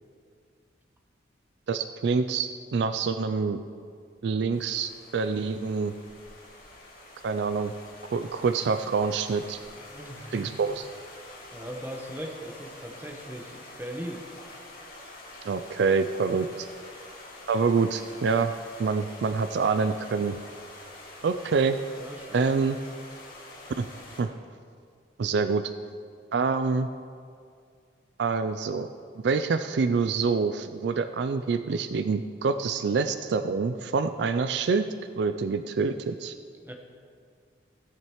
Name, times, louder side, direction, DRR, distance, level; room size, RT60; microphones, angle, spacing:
voice 1, 1.7-3.6 4.2-5.9 7.2-7.7 8.1-9.6 10.3-10.9 15.4-16.7 17.5-18.5 18.8-20.4 21.2-21.8 22.3-22.8 23.8-23.9 24.2-24.3 25.2-25.6 26.3-26.9 28.2-28.9 29.2-34.9 35.2-36.3, right 4 dB, 65° right, 10 dB, 0.4 m, -26 dB
sound 1, 4.5-24.2, left 2 dB, 50° left, 2.1 m, -47 dB
voice 2, 9.7-10.5 11.5-14.2 22.0-22.4 36.6-36.7, equal, 10° right, 1 dB, 1.1 m, -39 dB
16.5 x 8.7 x 3.1 m, 2.2 s
head